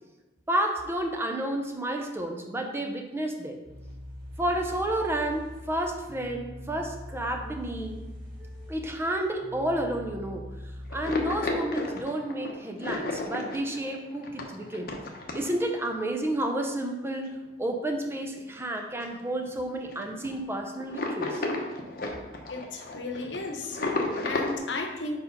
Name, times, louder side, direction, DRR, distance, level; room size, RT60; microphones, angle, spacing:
voice 1, 0.5-3.6 4.4-8.0 8.7-10.5 10.9-14.9 15.3-21.4, right 1 dB, 15° right, 3 dB, 0.6 m, -31 dB
sound 1, 3.6-11.4, equal, 55° right, 1.6 m, -42 dB
sound 2, 10.9-15.9 16.2-16.4 17.2-17.3 17.6-17.7 18.1-18.7 19.0-19.1 19.3-19.5 19.9-20.3 20.8-24.6, left 2 dB, 55° left, 0.8 m, -33 dB
voice 2, 22.5-25.2, left 3 dB, 85° left, 4 dB, 0.9 m, -34 dB
4.5 x 4.3 x 5.2 m, 1.1 s
head